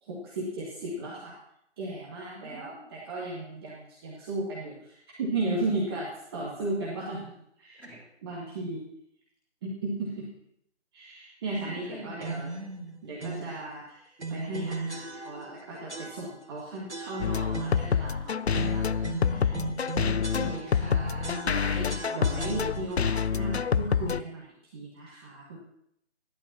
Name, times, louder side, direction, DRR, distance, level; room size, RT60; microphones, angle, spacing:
voice 1, 0.0-1.4 1.8-7.8 8.2-8.9 9.6-10.3 10.9-12.5 13.0-18.8 19.3-19.6 20.0-24.5 24.7-25.6, right 2 dB, 20° right, -5 dB, 1.9 m, -36 dB
voice 2, 2.3-2.9 7.8-8.0 11.4-13.0 18.5-19.7 20.0-21.4, equal, 5° left, -10 dB, 4.3 m, -42 dB
sound 1, 12.2-12.6 13.2-13.6 14.2-15.6 15.9-16.5 16.9-18.0 18.5-20.9 21.2-23.1, right 3 dB, 75° right, 1.9 m, -38 dB
sound 2, 17.2-24.2, left 6 dB, 65° left, 0.6 m, -27 dB
26.5 x 11.5 x 2.9 m, 0.75 s
figure-of-eight pair, 155°, 34 cm